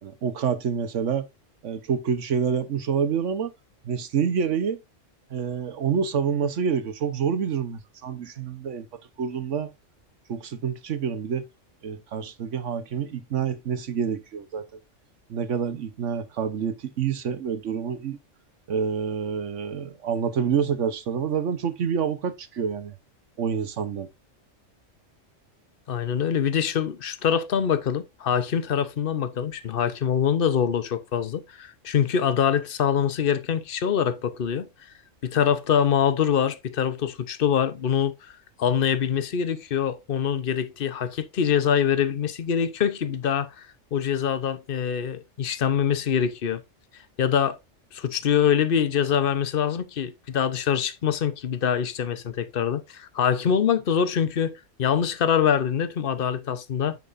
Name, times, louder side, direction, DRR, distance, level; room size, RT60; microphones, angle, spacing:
voice 1, 0.0-1.3 1.6-3.5 3.8-4.8 5.3-8.9 9.2-9.7 10.3-11.5 11.8-14.7 15.3-18.2 18.7-22.9 23.4-24.1, right 7 dB, 70° right, 1.4 m, -27 dB
voice 2, 25.9-34.7 35.2-38.3 38.6-43.5 43.9-46.6 47.2-47.6 47.9-57.0, left 8 dB, 50° left, 1.0 m, -24 dB
9.4 x 7.4 x 2.6 m
omnidirectional pair, 1.3 m